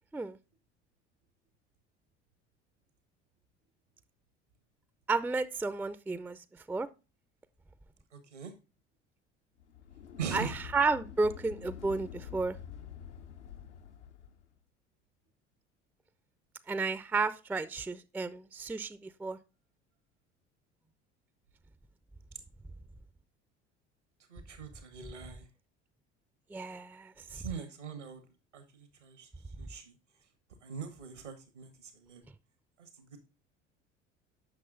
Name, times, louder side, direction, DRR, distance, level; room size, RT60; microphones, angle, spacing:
voice 1, 5.1-6.4 6.7-6.9 10.3-12.6 16.7-19.4 26.5-27.4, right 3 dB, 5° right, 0.3 m, -32 dB
voice 2, 8.1-8.5 10.2-10.6 24.3-25.5 27.3-28.2 28.5-29.3 29.6-29.9 30.6-32.2 32.8-33.3, right 6 dB, 90° right, 1.3 m, -42 dB
sound 1, 9.6-14.4, left 8 dB, 80° left, 0.7 m, -47 dB
7.8 x 6.0 x 3.8 m
figure-of-eight pair, 65°, 35 cm